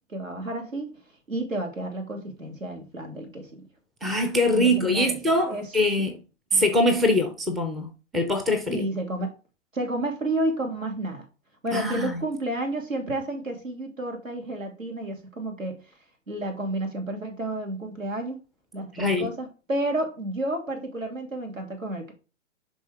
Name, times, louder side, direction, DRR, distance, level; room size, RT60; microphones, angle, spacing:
voice 1, 0.1-1.0 1.3-3.7 4.5-5.2 5.5-5.7 6.5-6.6 8.7-9.3 9.7-11.2 11.6-15.8 16.3-18.4 18.7-22.1, right 1 dB, 85° right, 3.3 m, -31 dB
voice 2, 4.0-6.2 6.5-8.9 11.7-12.1 18.9-19.3, left 1 dB, ahead, 0.4 m, -23 dB
11.0 x 3.8 x 4.9 m
figure-of-eight pair, 115°, 39 cm